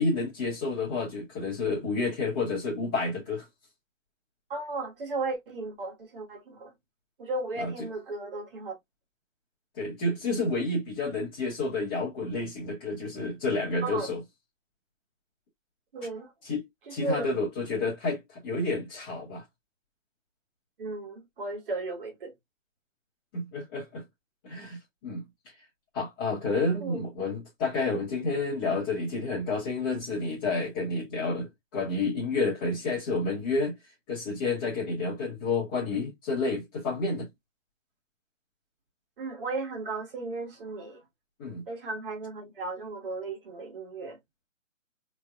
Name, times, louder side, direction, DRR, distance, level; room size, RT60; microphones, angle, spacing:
voice 1, 0.0-3.4 7.6-7.7 9.8-14.2 16.4-16.6 16.9-19.4 23.3-24.0 24.4-25.2 25.9-33.7 34.1-37.3 41.4-41.6, left 3 dB, 15° left, 1.0 m, -30 dB
voice 2, 4.5-6.7 7.2-8.7 13.8-14.1 15.9-16.3 16.9-17.4 20.8-22.3 26.8-27.1 39.2-41.0 41.7-44.2, right 3 dB, 45° right, 1.6 m, -35 dB
4.0 x 3.1 x 2.3 m
hypercardioid pair, 165°, 40 cm